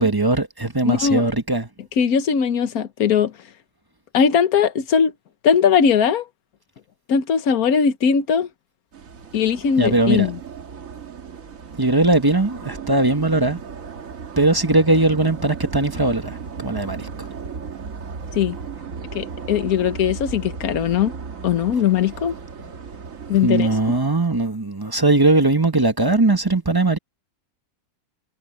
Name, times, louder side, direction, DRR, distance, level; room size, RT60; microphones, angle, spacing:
voice 1, 0.0-1.7 9.8-10.3 11.8-13.6 14.4-17.3 23.4-27.0, right 2 dB, 15° right, 1.1 m, -19 dB
voice 2, 0.9-1.3 2.0-3.3 4.1-5.1 5.4-6.2 7.1-8.5 9.3-10.4 18.3-18.6 19.1-21.1 21.4-22.3 23.3-23.7, left 7 dB, 70° left, 1.6 m, -19 dB
sound 1, 8.9-24.0, right 6 dB, 60° right, 1.9 m, -35 dB
omnidirectional pair, 1.6 m